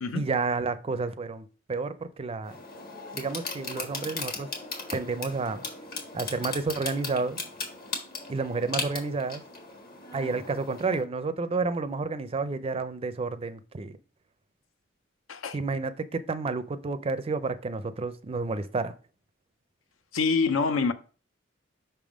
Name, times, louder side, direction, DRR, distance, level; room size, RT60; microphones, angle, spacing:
voice 1, 0.1-2.5 3.1-4.5 4.9-5.6 6.1-7.4 8.3-9.4 10.1-14.0 15.5-18.9, right 4 dB, 30° right, 0.4 m, -30 dB
sound 1, 2.4-11.0, left 4 dB, 50° left, 1.4 m, -38 dB
voice 2, 20.1-20.9, left 4 dB, 80° left, 0.6 m, -26 dB
5.6 x 3.5 x 4.9 m
head